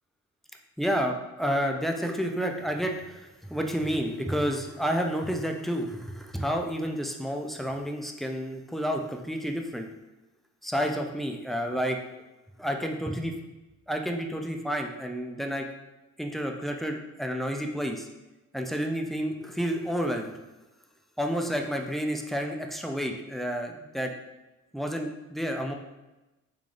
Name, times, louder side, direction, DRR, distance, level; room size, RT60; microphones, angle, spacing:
voice 1, 0.8-9.9 10.6-12.0 12.6-13.3 13.9-15.7 16.2-18.1 18.5-20.3 21.2-24.1 24.7-25.7, equal, ahead, 3 dB, 0.3 m, -30 dB
3.7 x 3.2 x 2.4 m, 1.0 s
cardioid pair, 90°, 30 cm